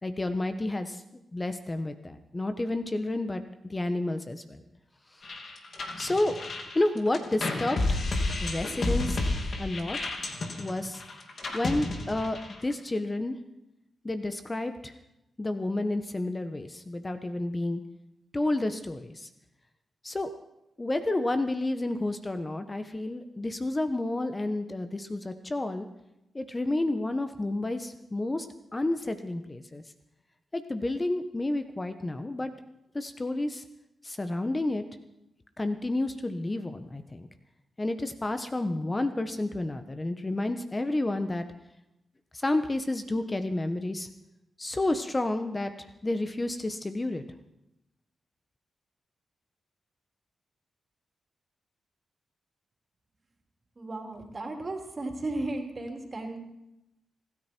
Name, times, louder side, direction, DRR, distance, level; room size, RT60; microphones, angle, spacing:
voice 1, 0.0-1.0 1.3-4.6 5.1-5.2 6.0-6.3 6.7-8.1 8.4-9.2 9.6-10.0 10.6-11.0 11.5-13.3 14.0-14.9 15.4-17.8 18.3-19.3 20.0-20.3 20.8-25.9 26.3-28.5 28.7-29.8 30.5-32.5 32.9-33.6 34.0-34.8 35.6-37.3 37.8-41.5 42.3-44.1 44.6-47.2, left 2 dB, 30° left, 8 dB, 1.3 m, -30 dB
sound 1, 5.2-12.7, left 2 dB, 60° left, 2.6 m, -31 dB
voice 2, 53.8-56.4, right 2 dB, 40° right, 3 dB, 3.4 m, -35 dB
27.0 x 10.0 x 4.6 m, 0.89 s
supercardioid pair, 45°, 0 cm